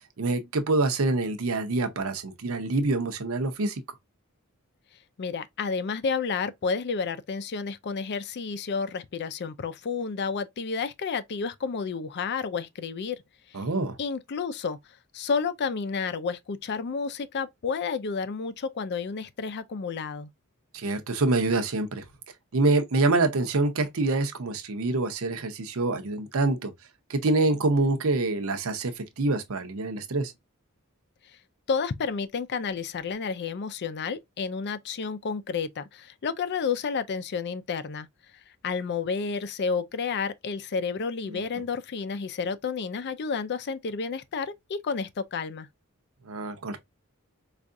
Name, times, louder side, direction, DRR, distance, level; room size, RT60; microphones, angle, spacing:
voice 1, 0.2-3.8 13.5-14.0 20.7-22.0 22.5-26.7 27.1-30.3 41.3-41.4 46.2-46.8, right 2 dB, 70° right, 0.7 m, -26 dB
voice 2, 5.2-13.2 13.5-13.6 14.0-14.8 15.1-20.3 31.7-38.1 38.6-45.7, left 5 dB, 50° left, 0.4 m, -31 dB
4.6 x 2.4 x 2.5 m
head